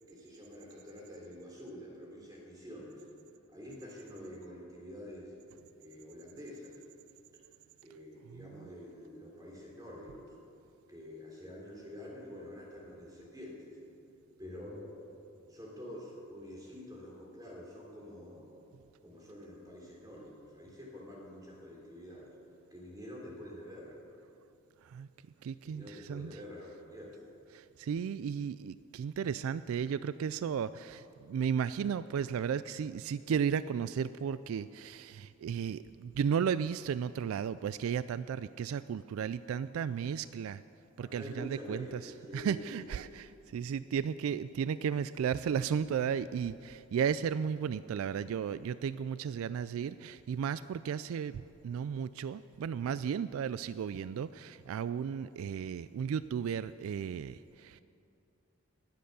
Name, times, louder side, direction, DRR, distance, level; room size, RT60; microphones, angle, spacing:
voice 1, 0.1-3.0 3.5-5.3 5.8-6.8 7.8-10.3 10.9-13.8 14.4-15.1 15.5-18.7 19.0-22.3 22.7-24.0 25.6-27.2 41.0-43.1, left 1 dB, 15° right, -3 dB, 3.4 m, -47 dB
voice 2, 8.3-8.7 24.8-25.1 25.4-26.4 27.5-40.6 41.0-57.8, right 7 dB, 75° right, 15 dB, 0.3 m, -34 dB
19.5 x 7.8 x 6.8 m, 2.6 s
head